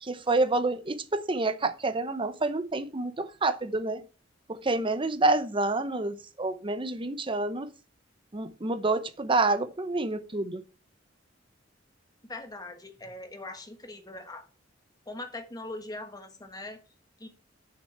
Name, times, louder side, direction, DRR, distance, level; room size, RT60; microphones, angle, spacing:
voice 1, 0.0-4.0 4.5-7.7 8.3-10.6, right 2 dB, 25° right, 0.8 m, -28 dB
voice 2, 12.3-14.4 15.1-16.8 17.2-17.3, left 2 dB, 20° left, 1.5 m, -41 dB
6.5 x 5.9 x 7.1 m
head